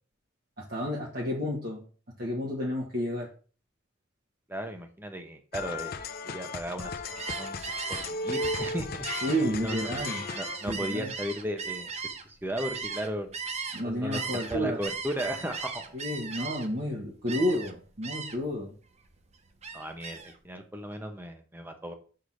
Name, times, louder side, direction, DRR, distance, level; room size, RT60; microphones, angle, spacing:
voice 1, 0.6-1.8 2.2-3.3 9.2-10.2 10.7-11.1 13.7-14.8 15.9-18.7, equal, 50° right, -3 dB, 1.6 m, -31 dB
voice 2, 4.5-6.9 7.4-7.6 7.9-9.9 10.3-13.4 13.8-15.9 19.7-21.9, equal, 10° right, 5 dB, 1.0 m, -36 dB
sound 1, 5.5-10.7, left 3 dB, 50° left, 0.7 m, -36 dB
Gull seagull, 7.0-13.8 14.1-16.8 17.3-17.7 18.0-18.5 18.9-20.4, right 5 dB, 35° right, 0.8 m, -37 dB
6.6 x 3.8 x 6.3 m, 0.39 s
head